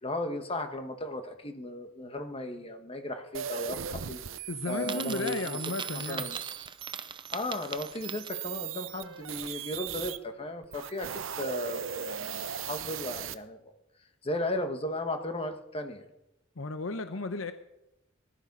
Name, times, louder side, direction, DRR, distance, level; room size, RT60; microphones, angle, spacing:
voice 1, 0.0-6.4 7.3-13.7 14.2-16.0, left 1 dB, 30° left, 7 dB, 1.5 m, -36 dB
sound 1, 3.3-10.2 10.6-13.3, right 8 dB, 80° right, 0.8 m, -38 dB
voice 2, 4.5-6.3 16.6-17.5, left 3 dB, 90° left, 9 dB, 0.9 m, -34 dB
Coin (dropping), 4.8-8.7, right 6 dB, 25° right, 0.7 m, -40 dB
19.0 x 12.5 x 5.4 m, 0.91 s
head